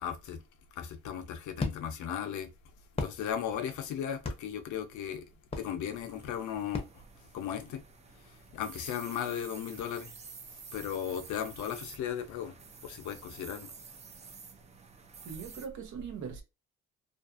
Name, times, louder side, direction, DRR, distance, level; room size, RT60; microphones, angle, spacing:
voice 1, 0.0-0.4 0.8-2.5 3.0-5.2 5.6-6.9 7.3-7.8 8.5-10.1 10.7-12.5 12.8-13.7, left 9 dB, 75° left, 0.6 m, -36 dB
sound 1, 1.0-7.8, left 3 dB, 20° left, 0.6 m, -41 dB
sound 2, 5.9-15.7, right 5 dB, 25° right, 0.3 m, -50 dB
voice 2, 15.2-16.4, right 6 dB, 70° right, 0.7 m, -41 dB
2.5 x 2.3 x 2.4 m
cardioid pair, 90°, 30 cm